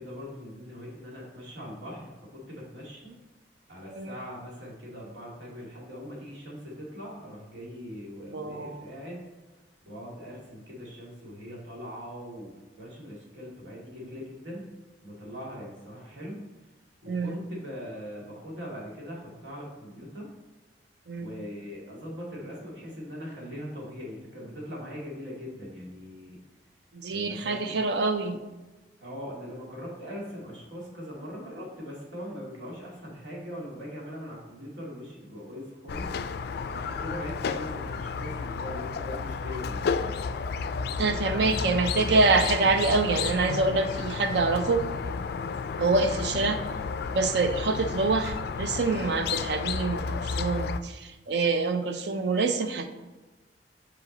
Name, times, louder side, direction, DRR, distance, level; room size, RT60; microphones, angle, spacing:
voice 1, 0.0-3.1 3.7-9.2 9.9-14.7 15.0-16.4 17.0-20.3 21.2-26.4 27.1-27.7 29.0-36.1 36.7-40.4 46.2-46.6, equal, 90° right, -4 dB, 2.1 m, -41 dB
voice 2, 8.3-8.8 17.1-17.4 21.1-21.3 26.9-28.4 41.0-44.9 45.8-46.6 47.1-52.9, right 3 dB, 65° right, 8 dB, 0.5 m, -26 dB
Squeak, 35.9-50.8, left 5 dB, 60° left, 0.3 m, -32 dB
5.6 x 5.0 x 3.9 m, 1.2 s
head